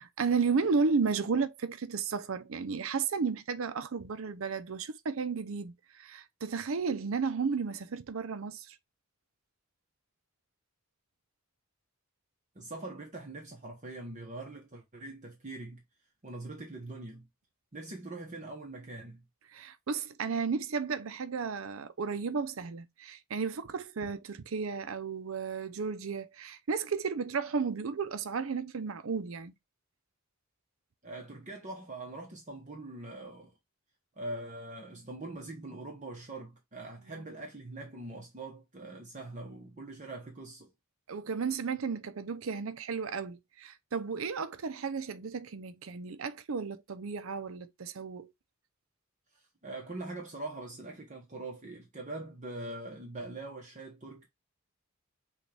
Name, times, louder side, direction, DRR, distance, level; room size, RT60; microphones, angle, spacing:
voice 1, 0.0-8.8 19.5-29.5 37.1-37.3 41.1-48.3, right 5 dB, 75° right, 0.6 m, -33 dB
voice 2, 12.5-15.8 16.2-17.2 17.7-19.2 31.0-33.5 34.2-40.7 49.3-54.3, right 2 dB, 35° right, 1.0 m, -43 dB
6.2 x 2.4 x 3.3 m
head